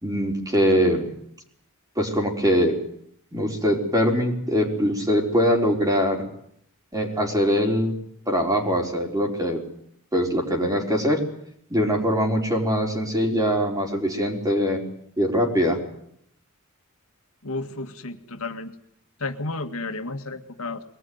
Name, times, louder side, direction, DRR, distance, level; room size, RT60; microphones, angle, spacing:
voice 1, 0.0-1.1 2.0-2.8 3.3-6.2 6.9-7.9 8.3-9.6 10.1-11.2 11.7-14.8 15.2-15.8, equal, 15° right, 1 dB, 4.4 m, -22 dB
voice 2, 17.4-18.7 19.2-20.8, left 3 dB, 80° left, 6 dB, 1.9 m, -32 dB
23.0 x 19.0 x 9.6 m, 0.70 s
head